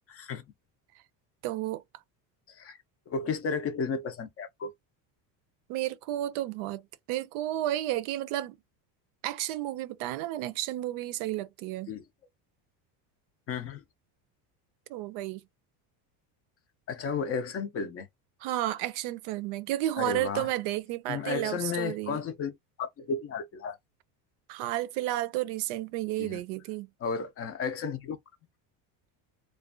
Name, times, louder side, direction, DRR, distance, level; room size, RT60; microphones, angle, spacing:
voice 1, 0.1-0.4 2.5-2.8 3.1-4.7 11.9-12.0 13.5-13.8 16.9-18.1 20.0-20.5 21.1-22.5 22.8-23.8 26.2-26.4 27.0-28.2, left 5 dB, 35° left, 0.4 m, -33 dB
voice 2, 1.4-1.8 5.7-6.8 7.1-8.5 9.2-11.9 14.9-15.4 18.4-22.2 24.5-26.9, right 14 dB, 70° right, 0.5 m, -32 dB
2.4 x 2.2 x 2.4 m
cardioid pair, 130°, 46 cm